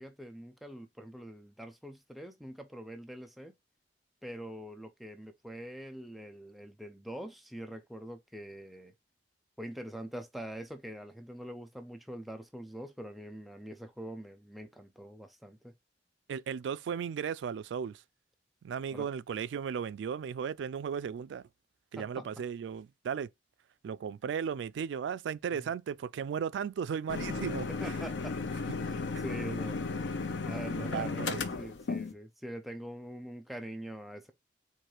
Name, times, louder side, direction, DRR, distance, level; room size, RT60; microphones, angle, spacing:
voice 1, 0.0-3.5 4.2-8.9 9.6-15.7 18.9-19.1 22.0-22.3 25.5-25.7 27.7-28.4 28.9-29.9 30.4-34.3, right 1 dB, ahead, 0.4 m, -44 dB
voice 2, 16.3-18.0 18.6-21.4 21.9-23.3 23.8-27.7 29.1-29.2 30.7-31.4, right 7 dB, 90° right, 0.3 m, -35 dB
sound 1, 27.1-32.1, left 4 dB, 90° left, 0.6 m, -35 dB
4.4 x 2.5 x 4.7 m
head